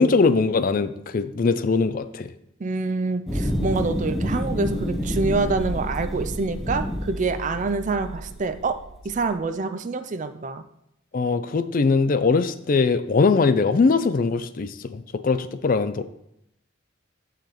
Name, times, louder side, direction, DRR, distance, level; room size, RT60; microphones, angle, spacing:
voice 1, 0.0-2.3 11.1-16.0, left 4 dB, 45° left, 12 dB, 0.4 m, -21 dB
voice 2, 2.6-8.8 9.0-10.6, right 3 dB, 40° right, 9 dB, 0.4 m, -26 dB
sound 1, 3.3-7.7, equal, ahead, 0.8 m, -28 dB
sound 2, 4.5-9.4, equal, 80° left, 1.4 m, -35 dB
14.5 x 4.9 x 3.1 m, 0.78 s
head